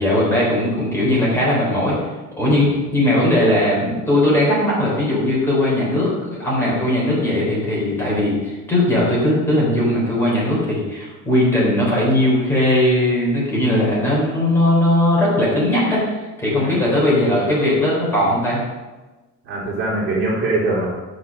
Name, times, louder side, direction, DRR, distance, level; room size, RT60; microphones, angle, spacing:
voice 1, 0.0-2.1 2.4-18.6, left 1 dB, 10° left, -6 dB, 3.8 m, -18 dB
voice 2, 2.4-2.8 16.6-16.8 19.4-20.9, right 2 dB, 40° right, -6 dB, 3.4 m, -23 dB
11.5 x 6.8 x 5.3 m, 1.2 s
cardioid pair, 165°, 32 cm